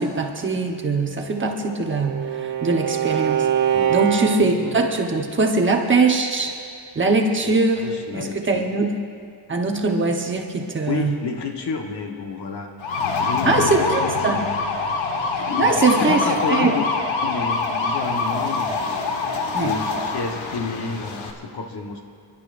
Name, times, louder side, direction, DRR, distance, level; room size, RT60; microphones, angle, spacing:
voice 1, 0.0-3.5 3.9-6.5 6.9-8.9 9.5-11.2 13.5-14.4 15.6-16.7 19.5-19.8, right 3 dB, 25° right, 1 dB, 1.0 m, -21 dB
Bowed string instrument, 1.2-4.8, right 9 dB, 80° right, 1.2 m, -24 dB
voice 2, 7.4-8.7 10.9-12.7 13.2-14.4 15.4-16.9 17.2-18.8 19.6-22.0, left 5 dB, 60° left, 3 dB, 1.3 m, -30 dB
sound 1, 12.8-21.3, left 4 dB, 80° left, 1.4 m, -25 dB
28.0 x 11.5 x 2.6 m, 2.3 s
wide cardioid pair, 170°, 45 cm